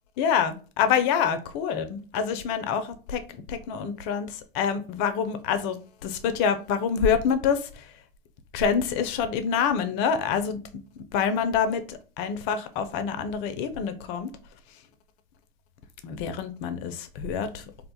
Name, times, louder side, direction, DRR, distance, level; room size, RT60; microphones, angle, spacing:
voice 1, 0.2-3.2 3.5-7.9 8.5-10.8 11.1-14.3 16.0-17.6, left 7 dB, 55° left, 0.5 m, -26 dB
2.4 x 2.2 x 2.7 m
hypercardioid pair, 85°, 29 cm